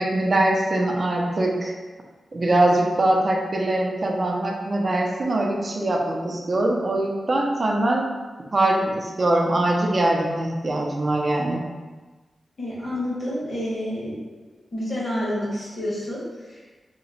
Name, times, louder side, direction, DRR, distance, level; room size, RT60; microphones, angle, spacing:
voice 1, 0.0-1.7 2.3-8.1 8.5-11.7, right 1 dB, 40° right, 0 dB, 0.5 m, -22 dB
voice 2, 12.6-14.2 14.7-16.8, left 1 dB, 35° left, -7 dB, 1.3 m, -29 dB
2.9 x 2.2 x 4.0 m, 1.3 s
wide cardioid pair, 95°, 0 cm